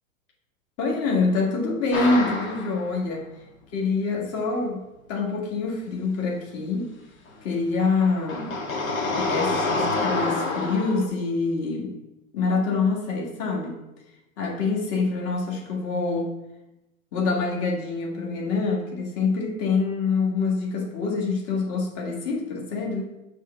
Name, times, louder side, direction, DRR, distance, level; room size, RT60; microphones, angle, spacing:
voice 1, 0.8-3.3 3.7-4.8 5.1-6.9 7.4-8.6 9.0-12.0 12.3-13.8 14.4-16.3 17.1-23.0, left 4 dB, 35° left, -2 dB, 1.8 m, -26 dB
sound 1, 1.9-2.9 7.3-7.4 7.8-11.1, left 3 dB, 70° left, 1.6 m, -27 dB
7.0 x 3.3 x 5.7 m, 0.94 s
hypercardioid pair, 130°, 42 cm